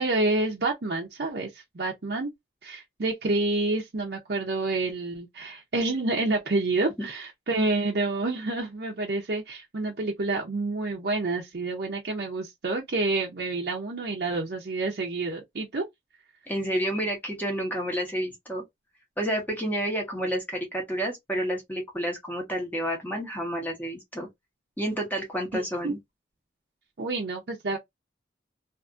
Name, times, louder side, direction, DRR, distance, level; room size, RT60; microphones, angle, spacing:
voice 1, 0.0-2.3 2.6-15.8 25.5-25.9 27.0-27.8, right 2 dB, 60° right, 0.6 m, -28 dB
voice 2, 16.5-18.6 19.2-24.3 24.8-26.0, equal, 10° left, 1.0 m, -30 dB
2.6 x 2.5 x 2.4 m
head